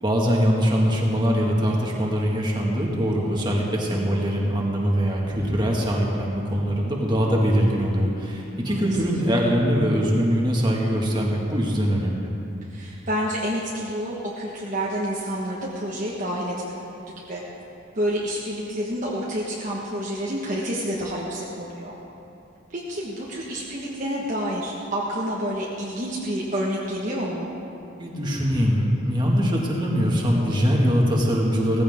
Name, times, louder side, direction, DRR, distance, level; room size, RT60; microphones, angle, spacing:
voice 1, 0.0-12.3 28.0-31.8, equal, 25° right, -3 dB, 2.0 m, -22 dB
voice 2, 3.9-4.2 8.6-8.9 12.7-17.0 17.3-17.4 17.9-22.0 22.7-27.6, equal, 40° right, -5 dB, 1.4 m, -29 dB
17.5 x 15.5 x 3.7 m, 2.8 s
head